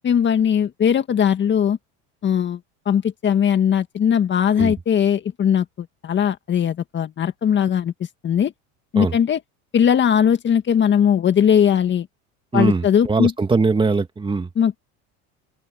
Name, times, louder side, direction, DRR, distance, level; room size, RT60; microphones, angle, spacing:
voice 1, 0.0-1.8 2.2-2.6 2.9-7.9 8.2-8.5 8.9-9.4 9.7-12.1 12.5-13.3 14.6-14.8, left 8 dB, 35° left, 1.8 m, -19 dB
voice 2, 12.5-14.5, right 4 dB, 15° right, 2.3 m, -21 dB
open air
supercardioid pair, 125°, 33 cm